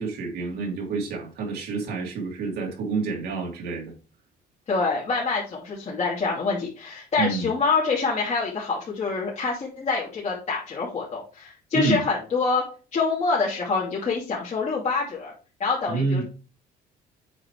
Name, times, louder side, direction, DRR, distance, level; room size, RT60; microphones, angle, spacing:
voice 1, 0.0-3.9 7.2-7.5 11.7-12.0 15.9-16.2, right 4 dB, 75° right, 2.6 m, -28 dB
voice 2, 4.7-12.6 12.9-15.3 15.6-16.2, left 4 dB, 40° left, 2.8 m, -26 dB
8.3 x 5.1 x 3.3 m
cardioid pair, 110°, 17 cm